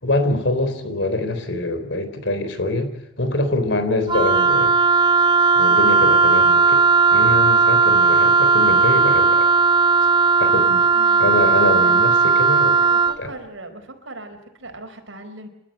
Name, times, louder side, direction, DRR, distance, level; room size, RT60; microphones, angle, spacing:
voice 1, 0.0-4.8 5.5-9.5 10.4-10.9 11.2-12.8 13.2-13.3, left 2 dB, 65° left, 9 dB, 4.1 m, -24 dB
Wind instrument woodwind instrument, 4.1-13.2, right 4 dB, 25° right, 0.8 m, -16 dB
voice 2, 10.9-11.4 11.7-12.1 12.7-15.5, right 2 dB, 70° right, 6 dB, 4.7 m, -38 dB
29.0 x 13.0 x 8.9 m, 0.90 s
head